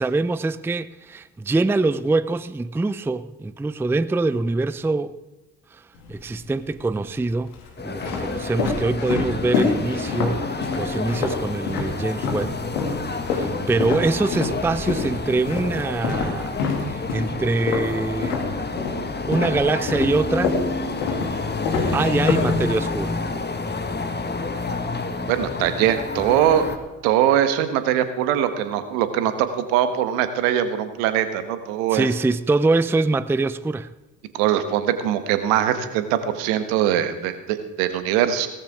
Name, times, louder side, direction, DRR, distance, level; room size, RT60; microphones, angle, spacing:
voice 1, 0.0-5.2 6.1-7.5 7.8-12.5 13.3-16.5 16.8-18.4 19.3-20.6 21.9-23.2 31.9-33.9, right 3 dB, 5° right, 0.5 m, -24 dB
sound 1, 6.0-6.7 7.4-12.5 12.8-19.0 19.3-23.0, left 4 dB, 80° left, 2.4 m, -27 dB
sound 2, 7.8-26.8, left 3 dB, 20° left, 1.7 m, -29 dB
voice 2, 25.3-26.7 27.0-32.1 34.3-38.5, right 10 dB, 75° right, 1.4 m, -22 dB
17.5 x 14.5 x 3.7 m
hypercardioid pair, 45°, 45 cm